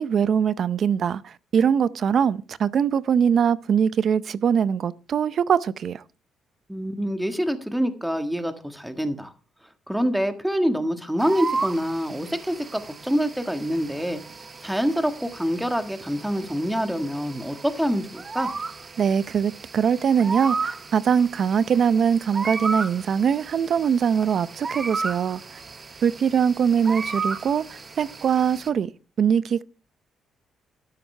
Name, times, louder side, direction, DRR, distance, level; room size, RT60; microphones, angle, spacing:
voice 1, 0.0-6.0 19.0-25.6 26.0-28.9 29.2-29.6, right 7 dB, 55° right, 0.6 m, -22 dB
voice 2, 6.7-9.3 9.9-14.2 14.6-18.5, equal, 5° right, 1.6 m, -26 dB
sound 1, 11.2-28.7, right 4 dB, 35° right, 0.9 m, -34 dB
13.0 x 9.9 x 3.4 m
cardioid pair, 90°, 0 cm